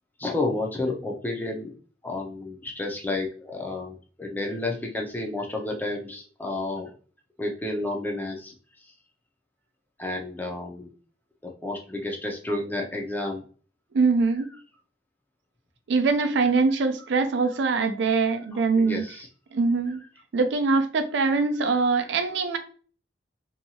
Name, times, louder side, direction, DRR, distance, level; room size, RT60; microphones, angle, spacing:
voice 1, 0.2-1.7 2.0-6.9 7.4-8.5 8.8-8.9 10.0-10.9 11.4-13.4 18.5-19.3 21.8-21.9, left 2 dB, 10° left, 1 dB, 0.4 m, -31 dB
voice 2, 13.9-14.5 15.9-19.0 19.5-20.0 20.3-22.6, right 4 dB, 70° right, 7 dB, 0.4 m, -23 dB
2.7 x 2.3 x 2.7 m, 0.41 s
head